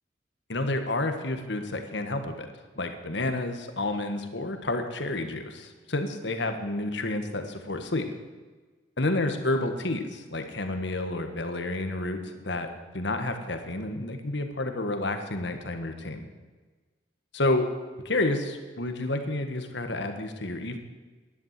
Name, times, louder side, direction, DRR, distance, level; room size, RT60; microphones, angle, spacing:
voice 1, 0.5-2.5 2.7-8.0 9.0-12.7 12.9-16.3 17.3-17.6 18.0-20.8, left 2 dB, 65° left, 7 dB, 1.5 m, -30 dB
11.5 x 11.0 x 7.5 m, 1.3 s
head